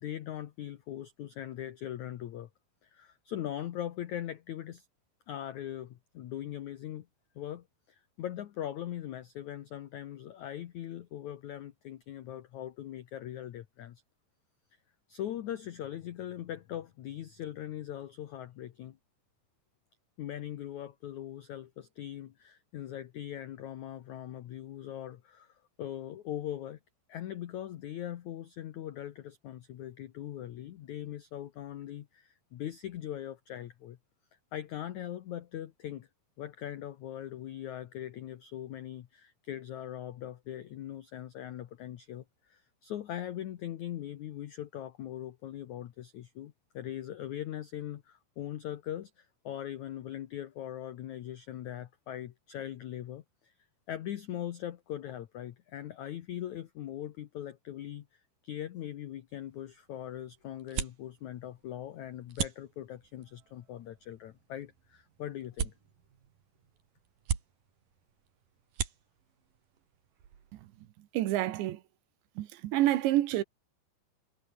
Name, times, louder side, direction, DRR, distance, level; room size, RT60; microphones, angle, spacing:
voice 1, 0.0-2.5 2.8-4.8 5.3-7.1 7.3-14.0 15.1-19.0 20.2-26.8 27.1-34.0 34.5-36.1 36.4-53.5 53.9-65.7, left 11 dB, 80° left, 1.6 m, -41 dB
sound 1, 59.3-70.9, right 8 dB, 55° right, 4.0 m, -42 dB
voice 2, 70.5-71.8 72.4-73.4, right 14 dB, 85° right, 3.6 m, -29 dB
omnidirectional pair, 5.1 m